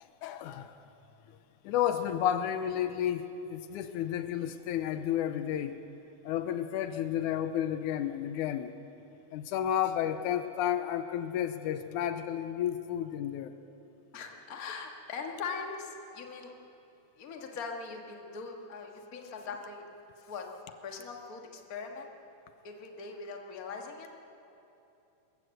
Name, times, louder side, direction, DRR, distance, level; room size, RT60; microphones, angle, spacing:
voice 1, 0.2-0.8 1.6-5.8 6.2-8.7 9.3-13.5, left 10 dB, 85° left, 10 dB, 2.2 m, -31 dB
voice 2, 14.1-16.5 17.2-19.8 20.3-20.5 20.8-22.1 22.6-24.1, left 5 dB, 35° left, 2 dB, 1.7 m, -41 dB
24.5 x 14.5 x 7.8 m, 2.9 s
omnidirectional pair, 3.5 m